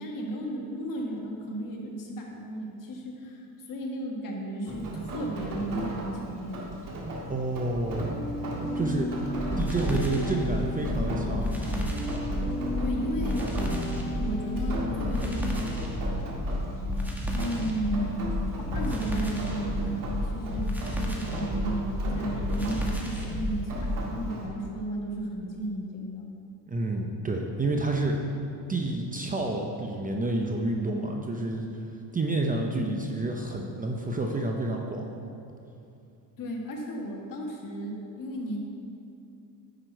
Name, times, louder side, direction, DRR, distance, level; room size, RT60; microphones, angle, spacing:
voice 1, 0.0-6.7 12.8-13.5 14.2-15.6 17.3-20.7 21.0-26.3 36.4-38.6, right 1 dB, 50° left, 0 dB, 1.6 m, -34 dB
Rain, 4.7-24.5, right 1 dB, 50° right, 2.0 m, -38 dB
voice 2, 7.3-8.1 8.8-9.1 9.6-11.5 26.7-28.2 28.7-31.7 32.1-35.2, right 2 dB, 20° right, 1 dB, 0.6 m, -29 dB
sound 1, 7.9-15.5, left 1 dB, 20° left, 1.7 m, -34 dB
sound 2, 9.4-24.0, equal, 5° right, 1.1 m, -31 dB
10.0 x 5.9 x 4.5 m, 2.7 s
cardioid pair, 120°, 42 cm